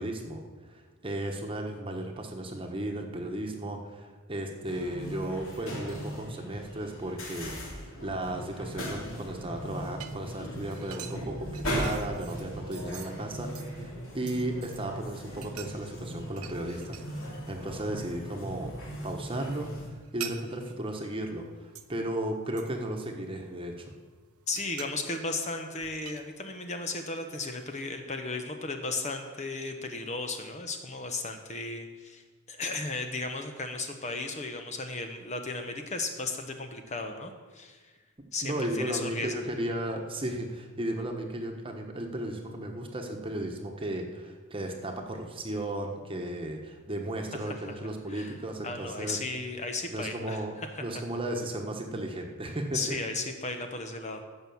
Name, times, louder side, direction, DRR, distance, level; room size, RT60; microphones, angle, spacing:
voice 1, 0.0-18.7 19.0-23.9 38.4-49.2 49.9-53.0, right 1 dB, 25° right, 2 dB, 1.3 m, -35 dB
sound 1, 4.6-19.9, equal, 65° left, 3.3 m, -38 dB
sound 2, 9.1-14.9 15.4-17.3 17.6-18.4 18.7-22.0 22.6-23.7 24.1-26.8 27.3-28.0, right 9 dB, 85° right, 0.9 m, -47 dB
voice 2, 24.5-37.9 38.3-39.5 47.4-47.8 48.1-48.4 48.6-50.8 52.7-54.2, left 3 dB, 30° left, 5 dB, 1.0 m, -35 dB
15.0 x 6.2 x 7.1 m, 1.4 s
head